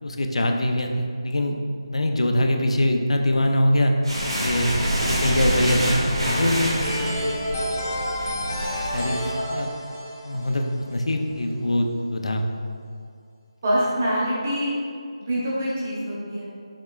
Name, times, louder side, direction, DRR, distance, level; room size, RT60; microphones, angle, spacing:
voice 1, 0.0-1.6 1.9-3.9 4.4-4.7 5.0-6.8 8.9-9.2 9.5-9.7 10.2-10.6 10.9-12.4, left 1 dB, 85° left, 3 dB, 0.4 m, -23 dB
sound 1, 4.0-9.3, equal, 65° right, 1.4 m, -26 dB
sound 2, 6.8-11.4, left 1 dB, 20° left, 0.3 m, -30 dB
voice 2, 13.6-14.8 15.2-16.5, equal, 20° right, -7 dB, 0.7 m, -25 dB
5.7 x 3.1 x 2.3 m, 2.2 s
figure-of-eight pair, 175°, 3 cm